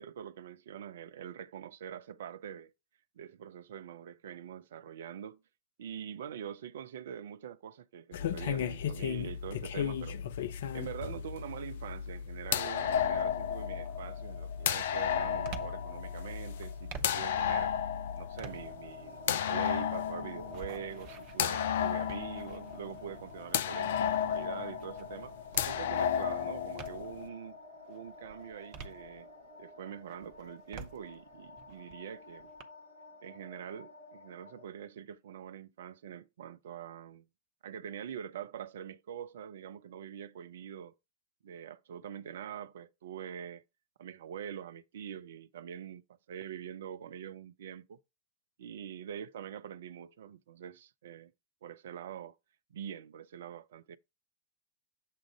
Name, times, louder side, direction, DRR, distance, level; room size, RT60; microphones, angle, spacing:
voice 1, 0.0-2.7 3.2-5.4 5.8-10.2 10.7-17.7 18.1-25.4 25.6-27.6 27.9-29.3 29.6-32.5 33.2-37.3 37.6-40.9 41.4-43.6 44.0-48.0 48.6-51.3 51.6-52.4 52.7-54.0, right 9 dB, 60° right, 0.4 m, -44 dB
sound 1, 8.1-27.3, left 9 dB, 60° left, 0.4 m, -33 dB
sound 2, 13.0-13.3 13.8-27.3 27.8-29.6 30.0-32.6, right 5 dB, 40° right, 0.9 m, -51 dB
sound 3, 18.3-34.7, left 3 dB, 80° left, 1.8 m, -51 dB
7.4 x 2.5 x 5.7 m
figure-of-eight pair, 90°, 0 cm